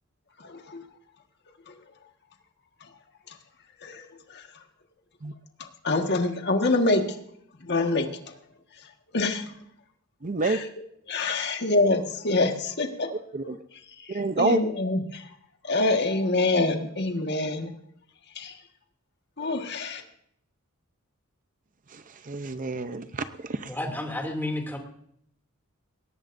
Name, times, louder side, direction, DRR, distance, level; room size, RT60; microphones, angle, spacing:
voice 1, 0.4-0.8 1.7-1.8 3.8-4.0 4.3-4.5 5.6-7.2 7.6-8.3 9.1-9.4 10.4-10.6 11.1-13.1 13.4-13.5 14.0-15.3 15.6-17.7 18.3-18.6 19.4-20.0, left 2 dB, 50° left, 4 dB, 1.6 m, -26 dB
voice 2, 10.2-10.6 13.1-13.6 14.1-14.6 21.9-23.7, right 3 dB, 40° right, 10 dB, 0.7 m, -28 dB
voice 3, 23.7-24.8, left 1 dB, 10° left, 2 dB, 2.7 m, -31 dB
20.5 x 18.5 x 2.6 m, 0.68 s
head